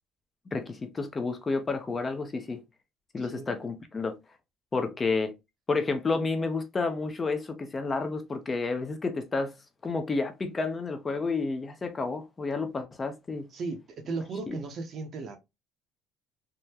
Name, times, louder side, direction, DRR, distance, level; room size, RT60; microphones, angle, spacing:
voice 1, 0.5-2.6 3.1-4.2 4.7-5.3 5.7-9.5 9.8-13.5 14.5-14.6, left 3 dB, 20° left, 0.4 m, -30 dB
voice 2, 3.2-3.5 13.5-15.4, right 3 dB, 40° right, 0.6 m, -36 dB
3.5 x 2.0 x 2.8 m
cardioid pair, 150°, 0 cm